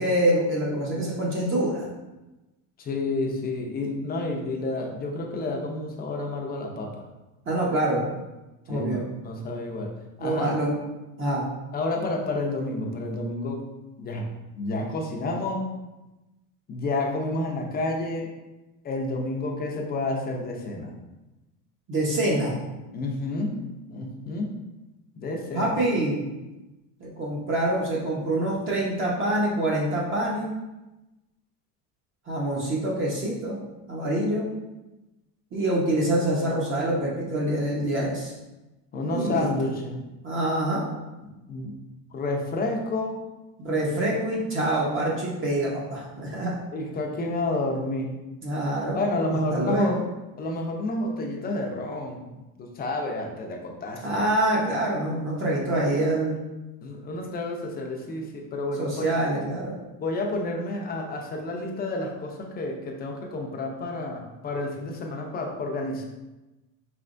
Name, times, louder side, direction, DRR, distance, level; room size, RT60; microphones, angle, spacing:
voice 1, 0.0-1.9 7.5-8.0 8.7-9.1 10.2-10.8 11.2-11.5 21.9-22.6 25.5-26.2 27.0-30.5 32.3-33.6 33.9-34.5 35.5-38.3 39.1-39.7 40.2-40.8 43.6-46.5 48.4-49.0 49.3-50.0 54.0-56.4 58.8-59.8, right 1 dB, 35° right, -4 dB, 0.8 m, -25 dB
voice 2, 2.8-7.1 8.7-10.5 11.7-13.7 14.0-14.3 14.5-15.7 16.7-18.3 18.8-20.9 22.9-23.6 23.9-24.6 25.2-25.8 38.9-40.0 41.5-41.7 42.1-43.2 46.7-48.1 48.9-50.1 50.4-54.1 56.8-59.1 60.0-66.1, left 2 dB, 25° left, 1 dB, 0.5 m, -30 dB
4.5 x 3.3 x 2.5 m, 1.0 s
cardioid pair, 155°, 38 cm